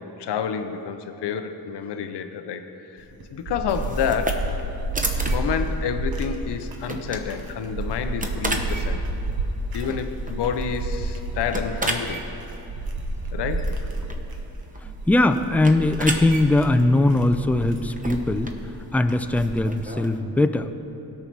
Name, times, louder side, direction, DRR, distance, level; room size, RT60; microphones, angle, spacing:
voice 1, 0.0-3.1 3.3-4.5 5.2-9.1 9.7-12.2 13.3-13.8, left 7 dB, 90° left, 8 dB, 0.7 m, -29 dB
sound 1, 3.0-19.8, right 1 dB, 60° right, 1.2 m, -30 dB
sound 2, 3.7-20.2, right 2 dB, 20° right, 0.9 m, -35 dB
voice 2, 14.8-18.5 18.9-20.8, left 2 dB, 5° left, 8 dB, 0.4 m, -20 dB
16.5 x 5.7 x 4.6 m, 2.9 s
cardioid pair, 80°, 40 cm